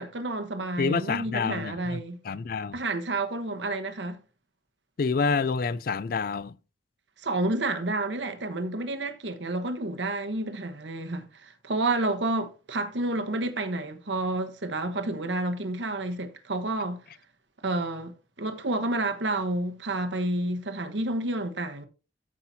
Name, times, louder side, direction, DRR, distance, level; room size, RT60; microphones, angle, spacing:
voice 1, 0.0-2.2 2.7-4.2 7.2-17.0 17.6-21.9, right 2 dB, 85° right, 1.2 m, -30 dB
voice 2, 0.8-2.8 5.0-6.6, left 5 dB, 55° left, 0.4 m, -28 dB
13.5 x 5.7 x 2.8 m
head